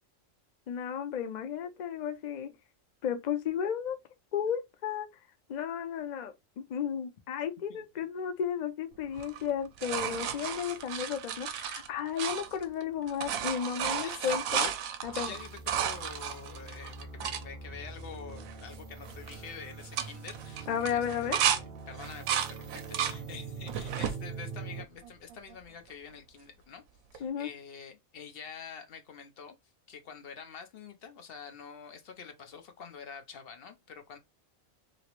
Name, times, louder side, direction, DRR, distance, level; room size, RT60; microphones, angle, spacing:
voice 1, 0.7-2.5 3.0-4.0 4.3-5.1 5.5-14.7 15.0-15.3 20.7-21.4 27.2-27.5, left 8 dB, 80° left, 0.4 m, -33 dB
voice 2, 7.7-8.1 13.8-14.3 15.1-26.8 27.1-29.6 29.9-34.2, left 6 dB, 55° left, 0.8 m, -47 dB
sound 1, 9.1-12.8 13.1-17.4 18.0-18.1 18.3-18.8 19.0-19.4 19.8-21.6 22.0-23.2 23.7-24.2 24.8-25.5 27.1-27.2, right 9 dB, 80° right, 1.0 m, -33 dB
sound 2, 15.0-24.8, right 4 dB, 50° right, 0.8 m, -44 dB
3.0 x 2.9 x 3.0 m
omnidirectional pair, 1.4 m